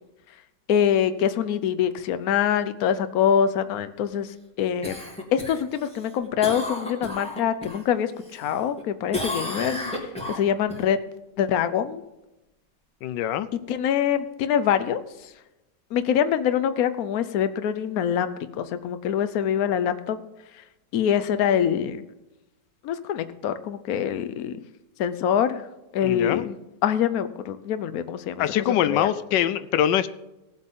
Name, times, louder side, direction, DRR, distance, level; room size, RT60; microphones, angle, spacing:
voice 1, 0.7-4.3 4.6-5.0 5.3-9.8 10.3-11.0 11.4-12.0 13.7-15.0 15.9-20.2 20.9-22.0 22.8-24.6 25.0-25.6 25.9-26.6 26.8-28.4 28.8-29.1, left 9 dB, 60° left, 11 dB, 1.2 m, -24 dB
Cough, 4.8-7.8 8.2-8.8 9.1-10.8 15.2-15.3, left 1 dB, 5° left, 2.7 m, -33 dB
voice 2, 13.0-13.5 26.0-26.4 28.4-30.1, left 11 dB, 85° left, 13 dB, 1.3 m, -23 dB
18.5 x 7.8 x 3.7 m, 0.98 s
omnidirectional pair, 1.9 m